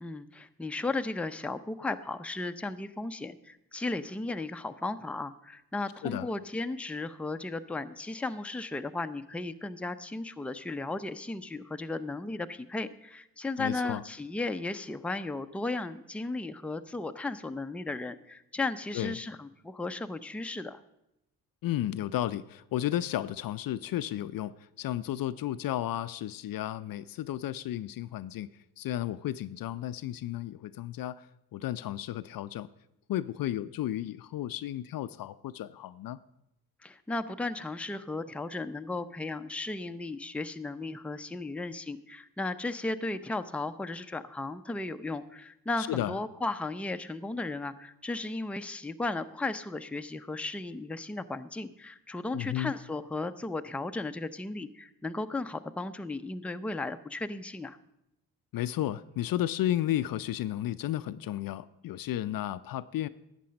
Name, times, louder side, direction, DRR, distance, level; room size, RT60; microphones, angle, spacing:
voice 1, 0.0-20.8 36.8-57.8, left 2 dB, 5° left, 8 dB, 0.5 m, -35 dB
voice 2, 13.6-14.0 18.9-19.2 21.6-28.5 28.8-32.7 33.1-36.2 45.8-46.1 52.3-52.7 58.5-63.1, left 13 dB, 55° left, 15 dB, 0.5 m, -33 dB
11.5 x 7.6 x 5.2 m, 0.84 s
supercardioid pair, 55°, 41 cm